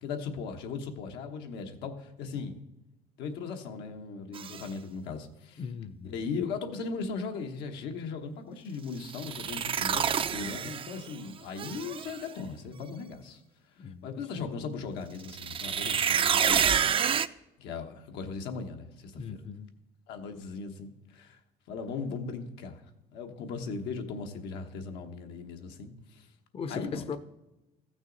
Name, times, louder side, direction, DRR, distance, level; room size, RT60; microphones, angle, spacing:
voice 1, 0.0-2.6 3.2-5.6 6.0-13.4 13.8-17.0 17.6-19.4 20.1-21.4 21.7-22.8 23.1-26.3 26.7-27.1, left 5 dB, 90° left, 1.1 m, -38 dB
sound 1, 4.3-4.6 9.0-11.1 11.6-12.2 15.2-17.3, right 8 dB, 30° right, 0.3 m, -28 dB
voice 2, 5.6-6.3 13.8-14.1 14.4-14.5 19.2-19.7 26.5-27.2, left 6 dB, 35° left, 0.5 m, -38 dB
14.5 x 6.2 x 3.9 m
cardioid pair, 110°, 17 cm